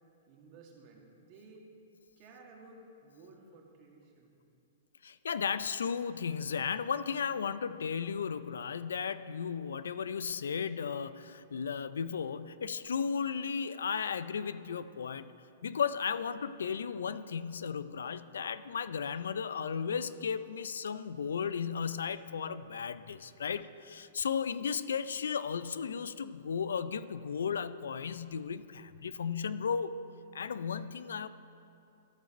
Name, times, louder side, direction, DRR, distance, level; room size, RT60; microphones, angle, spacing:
voice 1, 0.3-1.6 2.2-4.3 23.3-23.5, right 3 dB, 45° right, 0 dB, 1.9 m, -55 dB
voice 2, 5.0-15.3 15.6-29.9 30.3-31.3, left 6 dB, 80° left, 14 dB, 0.3 m, -35 dB
14.0 x 5.2 x 5.0 m, 2.7 s
hypercardioid pair, 125°, 0 cm